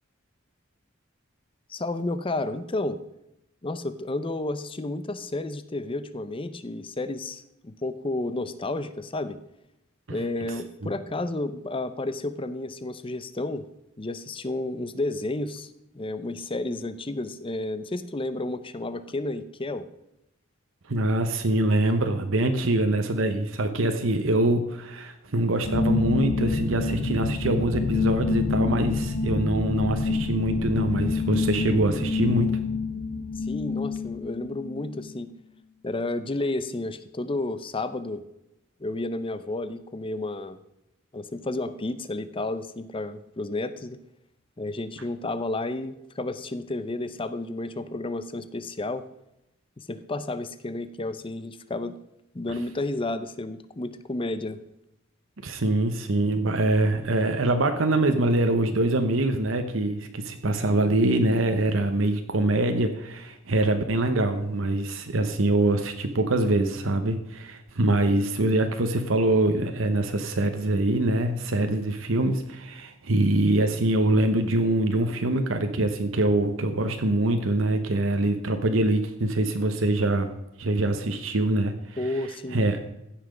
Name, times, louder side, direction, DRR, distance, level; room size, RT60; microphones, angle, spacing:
voice 1, 1.7-3.0 3.6-9.4 10.1-13.6 14.0-15.7 15.9-19.9 33.3-35.3 35.8-38.2 38.8-40.6 41.1-44.0 44.6-49.0 49.8-52.0 52.3-54.6 82.0-82.6, left 2 dB, 25° left, 12 dB, 0.6 m, -31 dB
voice 2, 20.9-32.6 55.4-80.3 80.6-82.0 82.5-82.8, right 1 dB, 75° right, 6 dB, 0.9 m, -24 dB
sound 1, 25.6-35.1, left 4 dB, 70° left, 1.2 m, -27 dB
15.5 x 5.9 x 5.1 m, 0.88 s
head